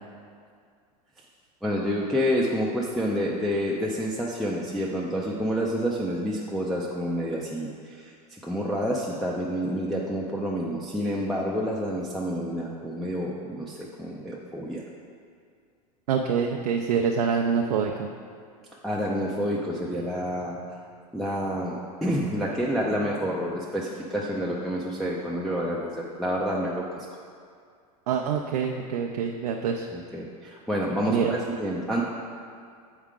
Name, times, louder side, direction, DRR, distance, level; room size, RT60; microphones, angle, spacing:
voice 1, 1.6-14.8 18.8-20.6 21.1-27.1 29.9-32.0, equal, ahead, -5 dB, 0.5 m, -28 dB
voice 2, 16.1-18.1 28.1-29.9 31.1-31.3, right 6 dB, 85° right, 2 dB, 0.5 m, -26 dB
7.1 x 4.8 x 3.7 m, 2.2 s
hypercardioid pair, 115°, 20 cm